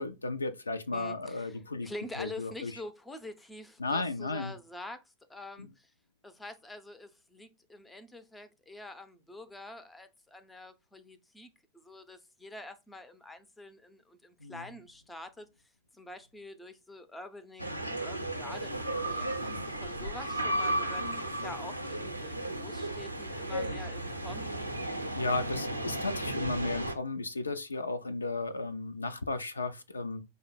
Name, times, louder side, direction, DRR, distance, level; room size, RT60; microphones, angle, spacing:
voice 1, 0.0-1.9 2.2-2.7 3.8-4.5 14.4-14.6 19.4-19.7 25.1-30.2, left 3 dB, 80° left, 0.4 m, -34 dB
voice 2, 0.9-5.9 6.2-11.5 11.7-15.5 15.9-24.5, left 2 dB, 10° left, 0.6 m, -46 dB
sound 1, 17.6-27.0, right 1 dB, 90° right, 0.5 m, -34 dB
5.0 x 2.1 x 4.1 m
figure-of-eight pair, 90°, 0 cm